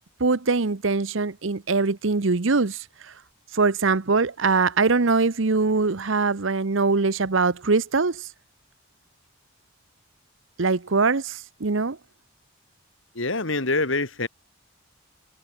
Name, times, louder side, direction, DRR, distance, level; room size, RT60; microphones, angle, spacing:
voice 1, 0.2-3.1 3.5-8.3 10.6-12.0, right 4 dB, 65° right, 0.9 m, -22 dB
voice 2, 13.1-14.3, left 3 dB, 65° left, 3.0 m, -25 dB
head